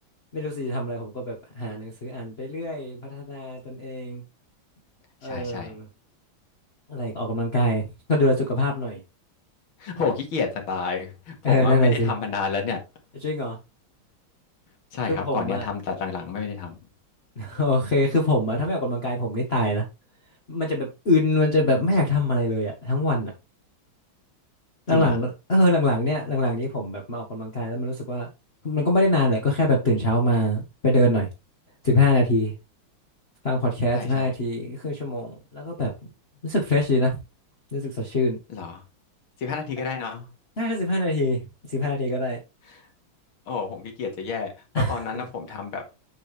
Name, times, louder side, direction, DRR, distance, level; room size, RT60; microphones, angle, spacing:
voice 1, 0.3-4.2 5.2-5.8 6.9-7.8 8.1-9.0 11.4-12.1 13.2-13.6 15.1-15.6 17.4-19.8 20.5-23.3 24.9-28.3 28.6-31.3 31.8-32.5 33.4-35.9 36.4-37.2 37.7-38.4 40.6-41.4 41.7-42.4 44.7-45.0, left 1 dB, 35° left, 1.4 m, -23 dB
voice 2, 5.2-5.8 9.8-12.8 14.9-16.8 24.9-25.2 33.9-34.3 38.5-38.8 39.4-40.3 42.6-42.9 43.5-45.8, left 5 dB, 90° left, 2.7 m, -30 dB
7.5 x 7.0 x 3.4 m
omnidirectional pair, 2.2 m